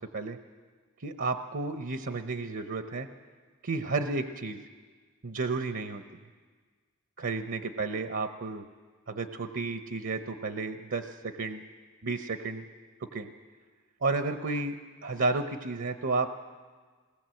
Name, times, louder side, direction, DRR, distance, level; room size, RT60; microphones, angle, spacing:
voice 1, 1.0-3.1 3.6-4.6 5.2-6.0 7.2-8.6 9.1-11.6 12.0-12.6 13.1-13.3 14.0-14.8 15.0-16.4, right 3 dB, 65° right, 8 dB, 0.8 m, -32 dB
21.0 x 18.5 x 7.7 m, 1.5 s
head